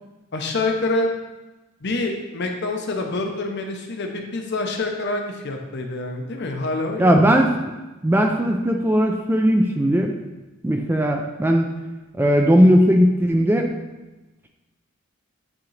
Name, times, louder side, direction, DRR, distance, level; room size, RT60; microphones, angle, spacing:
voice 1, 0.3-1.1 1.8-7.2, left 2 dB, 55° left, 3 dB, 0.8 m, -26 dB
voice 2, 7.0-7.7 8.0-10.1 10.6-11.7 12.1-13.7, equal, 10° right, 3 dB, 0.3 m, -18 dB
8.6 x 3.7 x 3.2 m, 1.1 s
head